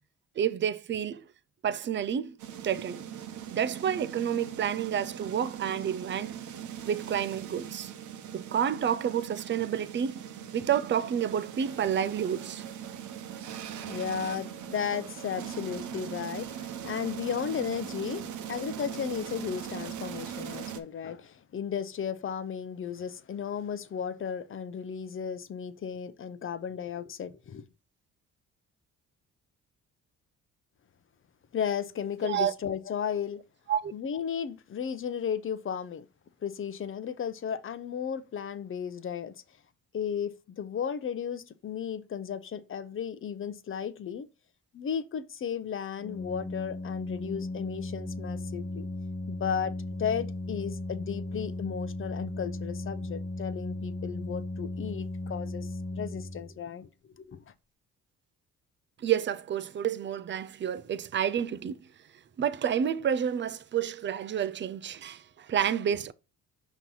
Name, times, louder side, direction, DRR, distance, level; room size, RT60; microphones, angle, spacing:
voice 1, 0.4-1.2 1.6-2.4 2.6-3.0 3.5-6.3 6.8-7.9 8.3-10.2 10.5-12.7 32.2-32.5 33.7-33.8 59.0-61.8 62.4-66.1, right 9 dB, 40° right, 0.5 m, -29 dB
sound 1, 2.4-20.8, right 9 dB, 80° right, 0.9 m, -40 dB
voice 2, 13.9-18.2 18.5-27.6 31.5-33.4 33.9-36.1 36.4-39.3 39.9-44.3 44.7-48.9 49.3-55.7 56.0-56.9 57.1-57.4, left 7 dB, 45° left, 0.7 m, -34 dB
Organ, 46.0-56.8, left 2 dB, 20° left, 1.2 m, -36 dB
5.8 x 3.0 x 5.4 m
cardioid pair, 90°, 30 cm